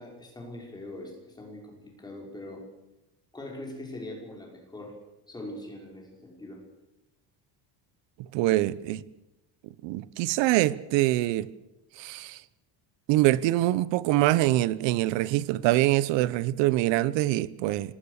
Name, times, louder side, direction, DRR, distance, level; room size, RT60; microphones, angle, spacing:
voice 1, 0.0-2.7 3.3-5.0 5.3-6.6, left 1 dB, 10° left, 5.8 m, -42 dB
voice 2, 8.2-9.0 9.8-11.5 12.0-12.4 13.1-17.9, right 16 dB, 85° right, 1.1 m, -24 dB
26.0 x 21.0 x 6.7 m
cardioid pair, 175°, 43 cm